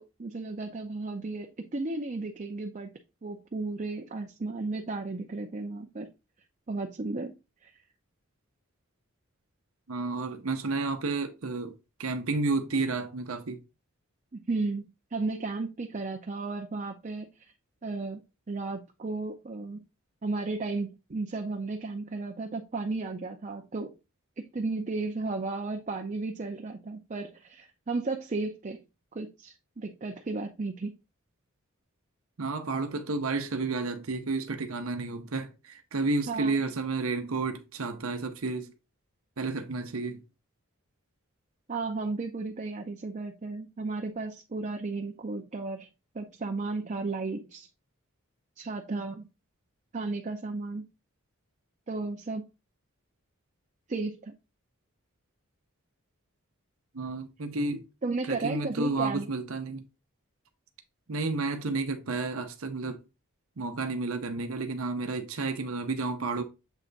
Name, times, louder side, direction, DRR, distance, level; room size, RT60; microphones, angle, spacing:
voice 1, 0.0-2.9 3.2-6.1 6.7-7.3 7.6-7.7 14.3-14.9 15.1-17.5 17.8-19.8 20.2-23.9 24.4-28.8 29.1-30.9 36.3-36.6 41.7-45.9 46.1-47.7 48.6-49.3 49.9-50.8 51.9-52.4 53.9-54.3 58.0-59.3, right 3 dB, 35° right, 0.5 m, -34 dB
voice 2, 9.9-13.6 32.4-38.7 39.4-40.2 56.9-57.8 58.3-59.8 61.1-63.0 63.6-66.4, right 3 dB, 80° right, 0.8 m, -31 dB
7.2 x 3.3 x 3.9 m
head